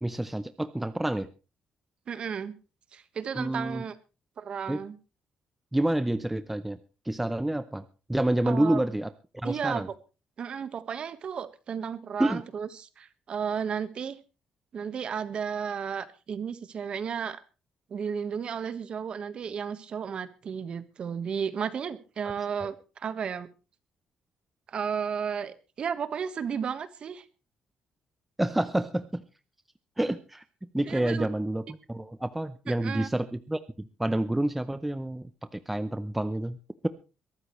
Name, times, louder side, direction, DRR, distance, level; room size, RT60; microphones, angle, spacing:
voice 1, 0.0-1.3 3.3-3.8 4.7-4.8 5.7-6.8 7.1-7.8 8.1-9.1 9.4-9.9 12.2-12.4 28.4-29.2 30.0-30.4 30.7-36.6, right 1 dB, 5° right, 11 dB, 0.7 m, -28 dB
voice 2, 2.1-2.5 2.9-4.0 4.4-5.0 8.5-8.8 9.4-9.9 10.4-14.2 14.7-17.4 17.9-23.5 24.7-27.2 30.8-31.3 32.7-33.1, right 7 dB, 45° right, 12 dB, 1.4 m, -33 dB
22.5 x 13.0 x 3.2 m, 0.33 s
cardioid pair, 140°, 2 cm